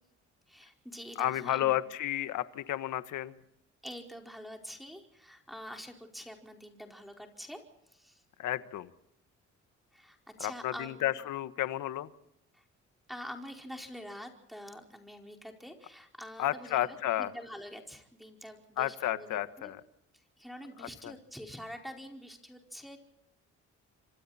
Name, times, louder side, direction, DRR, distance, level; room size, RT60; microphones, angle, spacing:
voice 1, 0.5-1.8 3.8-7.6 7.9-8.2 9.9-11.1 12.5-12.6 13.1-19.7 20.1-23.0, equal, ahead, 2 dB, 4.7 m, -46 dB
voice 2, 1.2-3.4 8.4-8.9 10.4-12.1 16.4-17.3 18.8-19.8 20.8-21.1, left 13 dB, 80° left, 12 dB, 1.4 m, -32 dB
28.5 x 26.0 x 4.3 m, 0.81 s
cardioid pair, 90°, 30 cm